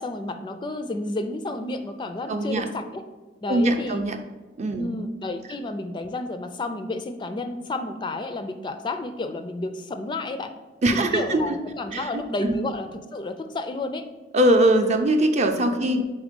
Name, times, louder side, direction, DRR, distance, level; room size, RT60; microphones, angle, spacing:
voice 1, 0.0-3.0 3.4-4.0 4.8-10.5 10.9-14.0 15.9-16.0, left 2 dB, 25° left, 8 dB, 0.3 m, -31 dB
voice 2, 2.3-2.7 3.5-4.2 4.6-4.9 10.8-11.4 11.9-12.1 12.4-12.6 14.3-16.0, right 1 dB, 40° right, 6 dB, 0.5 m, -21 dB
4.9 x 4.4 x 5.1 m, 1.3 s
head